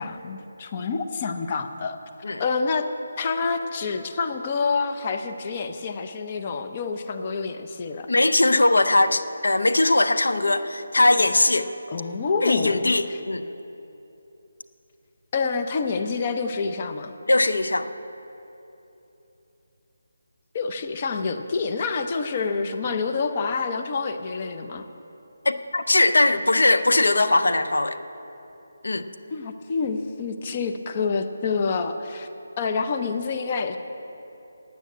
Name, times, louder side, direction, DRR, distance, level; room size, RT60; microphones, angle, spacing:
voice 1, 0.0-2.0 2.4-2.9 3.2-8.1 11.9-13.2 15.3-17.1 20.5-24.9 29.3-32.3 32.6-33.8, left 4 dB, 30° left, 7 dB, 0.6 m, -27 dB
voice 2, 8.1-11.7 12.4-13.4 17.3-17.9 25.4-28.0 28.8-29.0, left 2 dB, 85° left, 9 dB, 0.6 m, -20 dB
9.3 x 8.9 x 8.7 m, 3.0 s
figure-of-eight pair, 165°, 0 cm